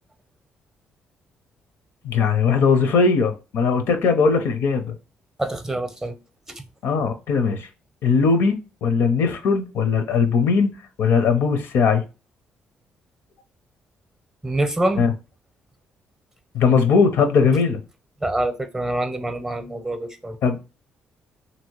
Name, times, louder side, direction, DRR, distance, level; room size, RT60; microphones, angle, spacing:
voice 1, 2.0-4.9 6.8-7.7 8.0-10.7 11.0-12.0 15.0-15.1 16.5-17.8 20.4-20.6, left 5 dB, 75° left, 0.5 m, -19 dB
voice 2, 5.4-6.1 6.5-6.6 14.4-15.1 18.2-20.4, right 1 dB, 15° right, 0.6 m, -25 dB
2.9 x 2.7 x 3.0 m
cardioid pair, 80°, 4 cm